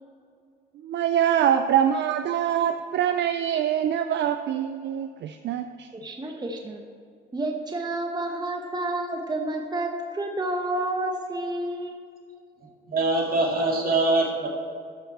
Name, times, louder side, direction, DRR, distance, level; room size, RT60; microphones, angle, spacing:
voice 1, 0.8-5.9, right 9 dB, 65° right, 9 dB, 0.4 m, -24 dB
voice 2, 5.9-6.8 7.3-12.1, right 1 dB, 20° right, 2 dB, 1.0 m, -30 dB
voice 3, 12.9-14.5, right 2 dB, 50° right, -1 dB, 2.1 m, -23 dB
12.5 x 5.9 x 4.2 m, 2.3 s
cardioid pair, 90°, 20 cm